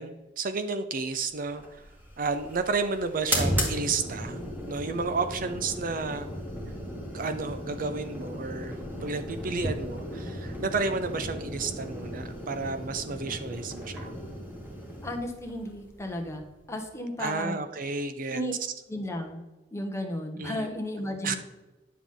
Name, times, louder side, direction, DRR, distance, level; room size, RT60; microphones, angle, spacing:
voice 1, 0.0-1.8 2.2-4.4 4.7-6.3 7.1-14.1 17.2-18.4 20.4-20.7 21.2-21.3, right 4 dB, 50° right, 9 dB, 0.6 m, -31 dB
sound 1, 1.5-16.8, equal, 10° right, 2.0 m, -35 dB
voice 2, 15.0-16.4 16.7-17.6 18.3-18.5 18.9-19.4 19.7-21.4, left 1 dB, 15° left, 3 dB, 1.2 m, -34 dB
10.0 x 7.1 x 3.8 m, 1.1 s
head